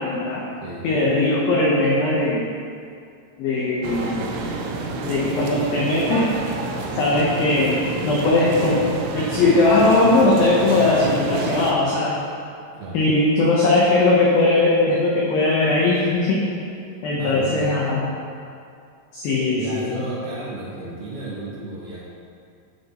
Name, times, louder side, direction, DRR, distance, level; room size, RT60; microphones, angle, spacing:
voice 1, 0.0-0.4 0.8-2.5 3.4-4.4 5.0-6.3 7.0-8.9 9.1-12.2 12.9-16.5 17.0-18.1 19.1-20.0, left 2 dB, 80° left, -4 dB, 2.1 m, -19 dB
sound 1, 3.8-11.7, right 3 dB, 90° right, 3.2 m, -29 dB
voice 2, 17.1-17.7 19.5-22.0, right 2 dB, 65° right, -6 dB, 3.1 m, -33 dB
13.5 x 6.3 x 3.0 m, 2.4 s
omnidirectional pair, 5.4 m